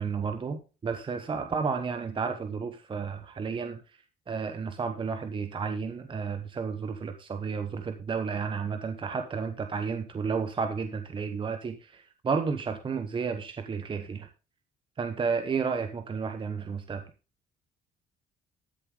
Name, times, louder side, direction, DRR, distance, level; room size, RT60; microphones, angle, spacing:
voice 1, 0.0-4.0 4.3-14.3 15.0-17.0, right 5 dB, 30° right, 7 dB, 1.0 m, -32 dB
13.0 x 6.9 x 3.8 m, 0.32 s
cardioid pair, 110°, 17 cm